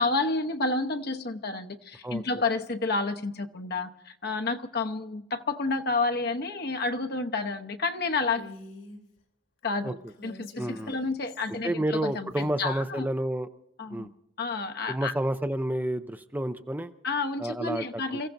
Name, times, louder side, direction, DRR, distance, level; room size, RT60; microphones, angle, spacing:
voice 1, 0.0-8.5 9.6-10.0 10.2-13.1 13.8-14.1 14.4-15.1 17.0-18.3, left 3 dB, 55° left, 1.0 m, -30 dB
Female speech woman speaking, 8.3-9.0 10.1-11.6 12.1-13.0, left 2 dB, 80° left, 3.0 m, -47 dB
voice 2, 10.6-11.0 11.6-13.5 13.9-14.1 14.9-16.9 17.4-18.2, right 1 dB, 10° right, 0.5 m, -30 dB
29.0 x 16.0 x 2.7 m
head